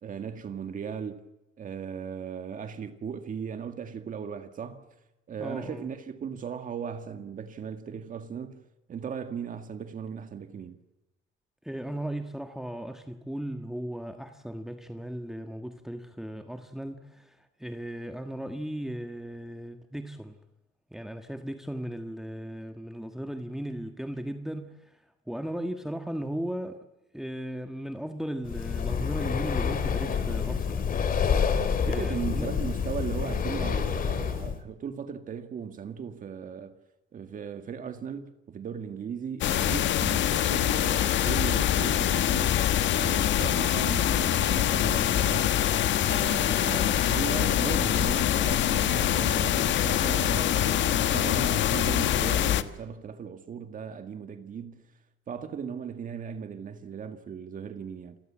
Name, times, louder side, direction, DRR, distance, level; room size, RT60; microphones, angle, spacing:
voice 1, 0.0-1.2 1.6-4.9 5.3-10.8 31.6-36.7 37.1-42.6 42.9-45.6 46.0-54.9 55.3-58.2, right 7 dB, 40° right, 1.9 m, -37 dB
voice 2, 5.4-5.9 11.6-20.4 20.9-26.9 27.1-30.9 31.8-32.5, right 1 dB, ahead, 1.5 m, -36 dB
Breathing, 28.4-34.6, left 6 dB, 45° left, 3.2 m, -28 dB
sound 1, 39.4-52.6, left 11 dB, 60° left, 1.5 m, -24 dB
29.0 x 23.5 x 7.5 m
cardioid pair, 160°, 21 cm